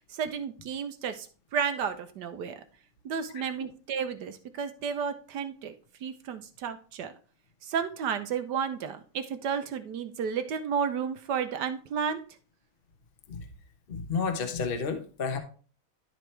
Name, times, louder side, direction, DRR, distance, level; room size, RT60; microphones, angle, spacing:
voice 1, 0.1-1.3 1.5-2.6 3.0-5.7 6.0-7.1 7.6-12.2, right 7 dB, 65° right, 9 dB, 1.1 m, -32 dB
voice 2, 13.9-15.4, left 5 dB, 40° left, 5 dB, 0.9 m, -31 dB
11.5 x 4.6 x 3.3 m, 0.39 s
omnidirectional pair, 2.3 m